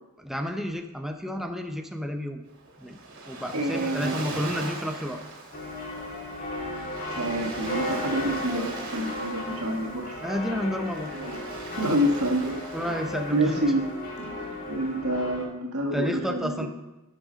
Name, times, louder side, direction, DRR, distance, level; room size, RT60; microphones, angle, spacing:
voice 1, 0.2-2.4 2.8-3.0 3.3-5.2 10.2-11.1 12.7-13.7 15.9-16.7, equal, ahead, 4 dB, 0.8 m, -31 dB
Waves surf, 2.5-14.9, right 3 dB, 55° right, 3.2 m, -41 dB
voice 2, 3.5-4.3 7.1-10.2 11.1-11.4 11.8-12.6 13.3-13.8 14.2-16.7, right 1 dB, 80° right, 1 dB, 1.6 m, -28 dB
sound 1, 5.5-15.5, left 1 dB, 40° left, 1.7 m, -35 dB
12.5 x 6.4 x 5.2 m, 1.0 s
head